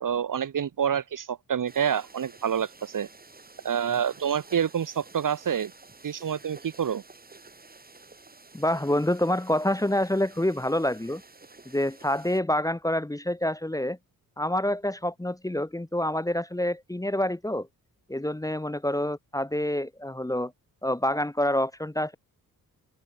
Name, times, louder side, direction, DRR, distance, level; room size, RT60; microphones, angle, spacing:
voice 1, 0.0-3.1 3.6-5.7 6.0-7.0, right 8 dB, 60° right, 1.5 m, -27 dB
sound 1, 1.7-12.4, right 3 dB, 25° right, 4.2 m, -51 dB
voice 2, 8.5-11.2 11.7-14.0 14.4-17.7 18.1-20.5 20.8-22.2, left 1 dB, 10° left, 1.2 m, -27 dB
open air
cardioid pair, 100°, 37 cm